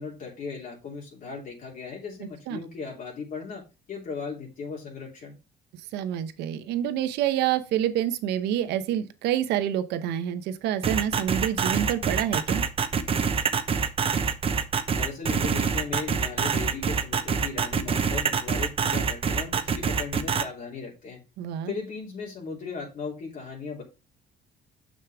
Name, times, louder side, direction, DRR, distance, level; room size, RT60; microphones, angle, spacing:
voice 1, 0.0-3.6 3.9-5.4 14.9-21.2 21.7-23.8, left 5 dB, 55° left, 3.1 m, -37 dB
voice 2, 5.9-12.6 21.4-21.7, right 11 dB, 85° right, 0.9 m, -27 dB
sound 1, 10.8-20.4, right 6 dB, 35° right, 1.0 m, -25 dB
6.7 x 6.5 x 3.5 m
cardioid pair, 110°, 17 cm